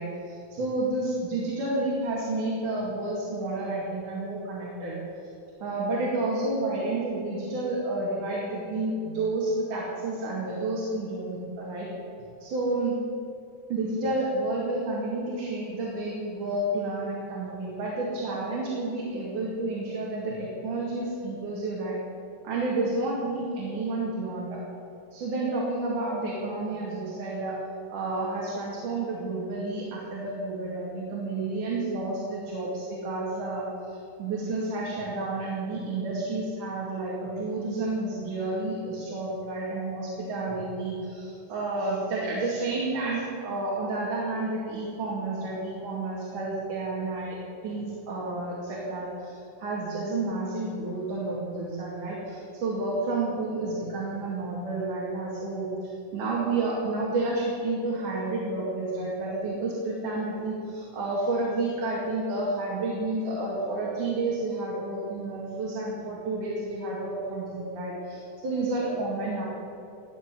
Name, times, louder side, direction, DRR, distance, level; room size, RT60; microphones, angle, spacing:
voice 1, 0.0-5.0 5.6-11.9 12.4-13.0 13.7-22.0 22.4-24.6 25.1-27.6 27.9-47.4 47.6-69.5, right 2 dB, 85° right, -6 dB, 4.0 m, -30 dB
18.5 x 6.6 x 9.4 m, 2.7 s
omnidirectional pair, 3.5 m